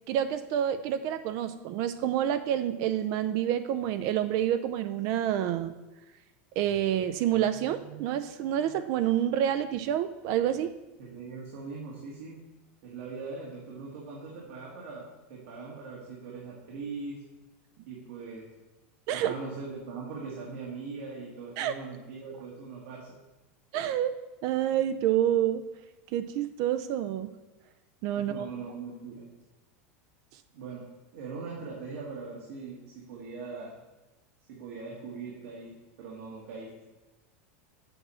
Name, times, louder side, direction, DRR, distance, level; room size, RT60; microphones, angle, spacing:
voice 1, 0.1-5.7 6.6-10.8 19.1-19.3 21.6-21.7 23.7-25.6 26.1-27.3 28.0-28.5, right 11 dB, 50° right, 11 dB, 0.4 m, -28 dB
voice 2, 11.0-12.4 12.8-17.2 17.9-18.4 19.1-23.2 28.1-29.3 30.5-30.8 31.1-33.7 34.5-35.7 36.0-36.7, right 4 dB, 75° right, -3 dB, 1.7 m, -41 dB
7.8 x 4.2 x 6.2 m, 1.1 s
supercardioid pair, 145°, 7 cm